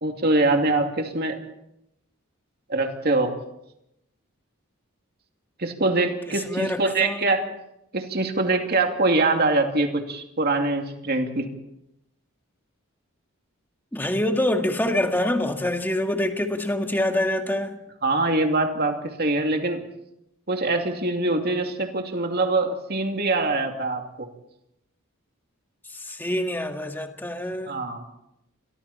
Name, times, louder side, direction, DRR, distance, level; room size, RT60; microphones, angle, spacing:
voice 1, 0.0-1.4 2.7-3.3 5.6-7.4 7.9-11.5 18.0-19.8 20.5-24.3 27.7-28.0, right 2 dB, 45° right, 4 dB, 2.6 m, -23 dB
voice 2, 6.3-7.2 13.9-17.7 25.9-27.8, left 1 dB, 10° left, 4 dB, 1.8 m, -26 dB
28.0 x 23.0 x 4.3 m, 0.82 s
head